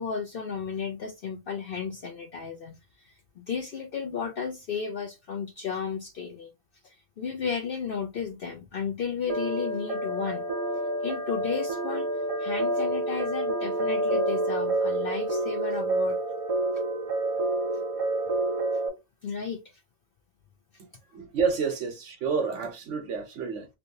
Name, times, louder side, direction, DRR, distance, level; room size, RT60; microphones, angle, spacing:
voice 1, 0.0-6.5 6.8-10.5 11.0-12.1 12.4-16.2 19.2-19.6, left 6 dB, 60° left, 0.6 m, -33 dB
sound 1, 9.3-18.9, right 2 dB, 40° right, 0.5 m, -28 dB
voice 2, 21.1-23.7, right 5 dB, 65° right, 1.2 m, -29 dB
3.2 x 2.7 x 2.7 m
omnidirectional pair, 1.4 m